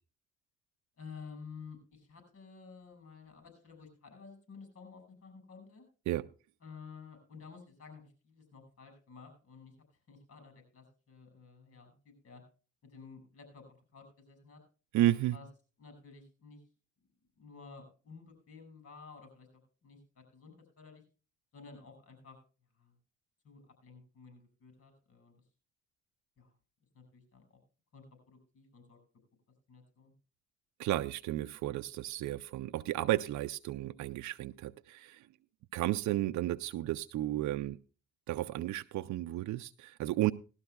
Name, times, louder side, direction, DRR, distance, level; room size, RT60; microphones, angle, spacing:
voice 1, 1.0-5.8 6.6-9.7 10.1-12.4 12.8-14.6 15.3-15.5 15.8-16.6 17.4-19.5 19.8-21.0 21.5-22.4 22.8-22.9 23.4-25.3 26.4-26.5 26.9-27.6 27.9-29.0 29.7-30.1, left 5 dB, 50° left, 5.8 m, -53 dB
voice 2, 14.9-15.4 30.8-35.3 35.7-37.8 38.3-40.3, right 15 dB, 70° right, 0.5 m, -33 dB
18.5 x 12.5 x 2.2 m
cardioid pair, 90°, 30 cm